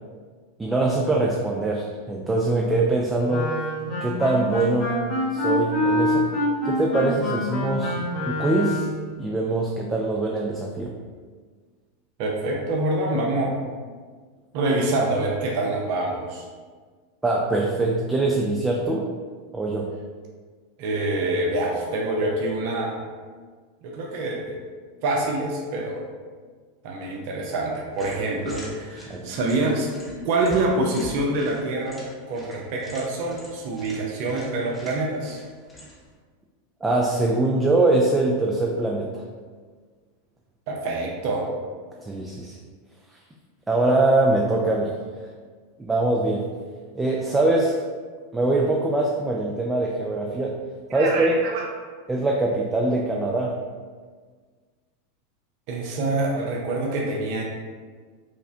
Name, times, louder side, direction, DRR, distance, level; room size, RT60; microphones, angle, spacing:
voice 1, 0.6-3.5 4.0-5.0 5.3-6.3 6.6-7.9 8.3-8.9 9.2-10.9 17.2-19.0 19.5-19.9 29.1-29.2 36.8-39.2 42.0-42.6 43.7-45.0 45.8-46.4 46.9-47.8 48.3-50.6 50.9-51.3 52.1-53.5, right 2 dB, 15° right, -2 dB, 0.4 m, -23 dB
Wind instrument woodwind instrument, 3.3-9.0, left 1 dB, 50° left, 1.1 m, -26 dB
voice 2, 12.2-13.5 14.5-16.5 20.8-23.0 23.8-24.6 25.0-26.0 26.8-29.9 30.2-35.4 40.7-41.5 50.9-51.7 55.7-57.4, right 2 dB, 60° right, -1 dB, 0.6 m, -26 dB
sound 1, 27.9-36.1, equal, 10° left, 0.9 m, -45 dB
4.8 x 2.1 x 2.7 m, 1.6 s
hypercardioid pair, 115°, 0 cm